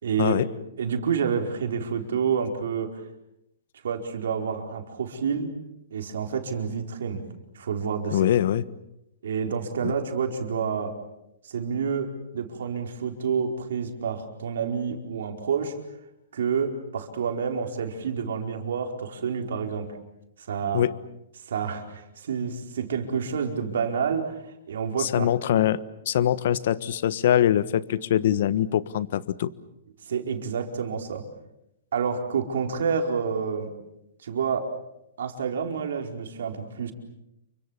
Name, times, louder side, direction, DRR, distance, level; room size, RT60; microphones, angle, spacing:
voice 1, 0.0-0.3 0.8-2.9 3.8-5.5 5.9-7.2 7.5-8.2 9.2-11.0 11.4-15.7 16.3-20.0 20.4-20.8 21.5-24.4 24.7-25.3 30.1-31.2 31.9-33.7 34.2-34.7 35.2-36.9, right 6 dB, 80° right, 4 dB, 4.7 m, -28 dB
voice 2, 8.1-8.6 9.8-9.9 20.7-20.9 25.0-25.8 26.0-29.5, left 11 dB, 60° left, 17 dB, 1.3 m, -23 dB
29.0 x 24.5 x 7.4 m, 0.83 s
hypercardioid pair, 145°, 0 cm